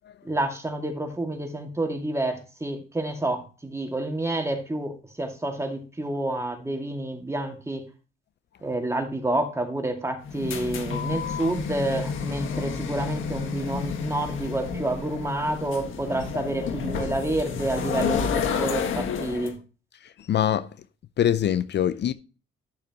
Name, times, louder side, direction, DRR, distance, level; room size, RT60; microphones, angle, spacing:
voice 1, 0.2-7.9 8.6-19.5, right 1 dB, 15° right, 2.2 m, -29 dB
sound 1, 10.2-19.5, left 6 dB, 75° left, 1.6 m, -30 dB
voice 2, 20.3-20.7 21.2-22.1, left 10 dB, 55° left, 0.5 m, -23 dB
11.5 x 6.8 x 3.0 m
cardioid pair, 85°, 21 cm